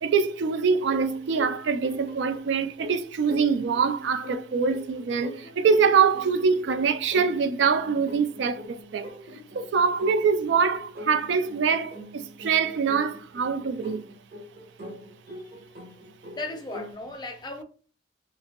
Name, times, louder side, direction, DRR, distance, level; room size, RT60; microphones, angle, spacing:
voice 1, 0.0-9.1 9.5-14.0, right 5 dB, 70° right, 0.3 m, -24 dB
sound 1, 0.9-16.9, left 1 dB, 55° right, 0.8 m, -43 dB
voice 2, 16.4-17.6, left 2 dB, 25° left, 0.5 m, -36 dB
2.9 x 2.5 x 2.8 m
head